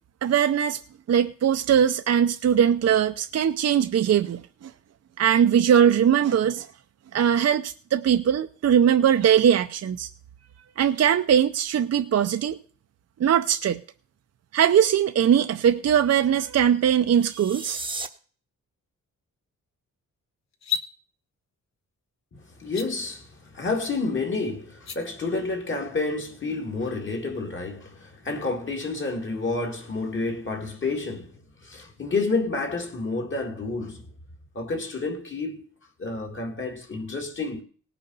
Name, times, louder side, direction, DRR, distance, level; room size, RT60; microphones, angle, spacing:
voice 1, 0.2-0.8 1.1-4.7 5.2-6.7 7.1-10.1 10.8-12.6 13.2-13.8 14.5-17.8, right 9 dB, 55° right, 0.6 m, -21 dB
sound 1, 17.1-18.1, right 3 dB, 15° right, 0.9 m, -34 dB
sound 2, 20.5-20.9 22.6-22.9 24.7-25.0, left 7 dB, 60° left, 1.1 m, -29 dB
voice 2, 22.6-31.3 31.6-34.0 34.6-35.6 36.0-37.6, left 3 dB, 40° left, 2.1 m, -29 dB
18.5 x 6.8 x 5.5 m
wide cardioid pair, 145°, 31 cm